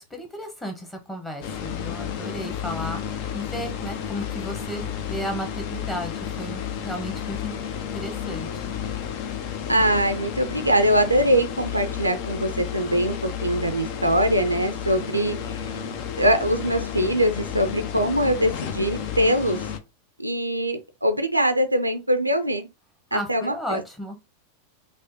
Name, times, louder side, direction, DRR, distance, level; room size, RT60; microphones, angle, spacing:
voice 1, 0.0-7.5 7.9-8.6 23.1-24.2, equal, 10° left, 1.1 m, -34 dB
sound 1, 1.4-19.8, left 8 dB, 45° left, 0.5 m, -32 dB
voice 2, 9.7-13.1 13.4-15.6 16.2-19.6 20.2-22.7 23.1-23.8, equal, 85° right, 0.4 m, -22 dB
4.8 x 2.1 x 2.8 m
figure-of-eight pair, 90°, 0 cm